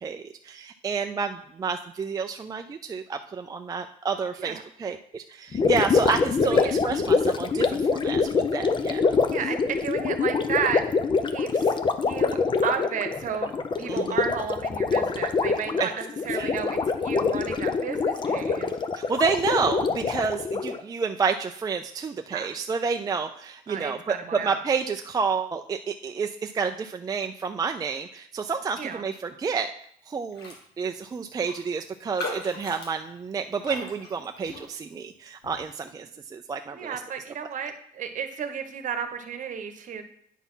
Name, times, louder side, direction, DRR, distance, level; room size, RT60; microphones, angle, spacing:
voice 1, 0.0-9.0 13.9-14.2 15.8-15.9 16.3-16.5 18.9-24.1 24.4-29.7 30.1-36.1 36.3-37.0, right 5 dB, 20° right, 6 dB, 0.4 m, -29 dB
Gurgling, 5.5-20.8, left 4 dB, 30° left, 0.6 m, -25 dB
voice 2, 6.4-6.7 9.3-10.8 11.3-11.7 12.0-13.5 13.8-18.7 22.3-22.5 23.7-24.6 28.8-29.1 36.7-40.0, right 7 dB, 50° right, 7 dB, 1.0 m, -33 dB
Raindrop, 30.3-30.7 30.9-31.0 31.4-35.0 35.4-35.7, left 3 dB, 75° left, 1.6 m, -39 dB
9.1 x 4.1 x 5.6 m, 0.68 s
cardioid pair, 110°, 17 cm